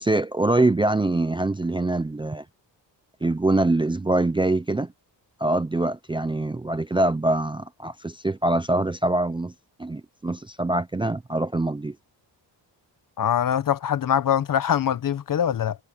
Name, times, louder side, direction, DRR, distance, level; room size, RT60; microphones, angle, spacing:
voice 1, 0.0-2.4 3.2-4.9 5.4-9.5 9.8-12.0, right 2 dB, 10° right, 0.4 m, -24 dB
voice 2, 13.2-15.8, left 9 dB, 50° left, 0.9 m, -23 dB
wide cardioid pair, 180°, 43 cm